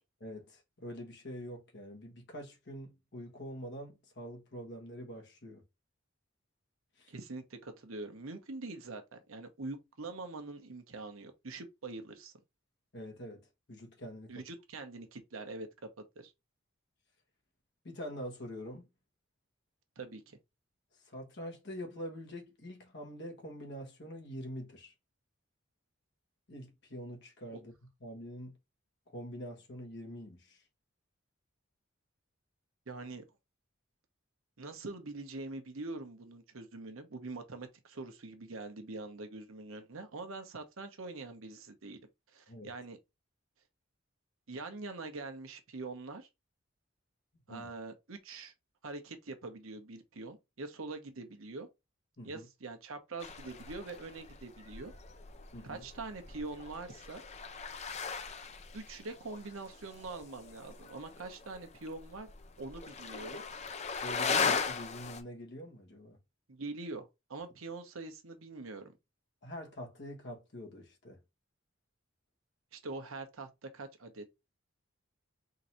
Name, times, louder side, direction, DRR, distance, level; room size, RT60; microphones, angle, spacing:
voice 1, 0.2-5.6 7.0-7.1 12.9-14.3 17.8-18.8 21.1-24.9 26.5-27.7 28.0-28.6 29.1-30.6 42.5-42.7 47.5-47.7 52.2-52.5 55.5-55.8 64.0-66.2 69.4-71.2, equal, 55° left, 1.3 m, -45 dB
voice 2, 7.1-12.3 14.3-15.7 16.2-16.3 20.0-20.4 27.5-27.6 32.9-33.2 34.6-42.0 42.3-43.0 44.5-46.3 47.5-48.5 48.8-51.7 52.2-54.9 55.6-57.2 58.7-62.3 62.6-63.4 66.5-68.9 72.7-74.2, right 3 dB, 80° right, 0.9 m, -44 dB
sound 1, 53.2-65.2, left 5 dB, 30° left, 0.5 m, -39 dB
3.8 x 2.7 x 4.3 m
head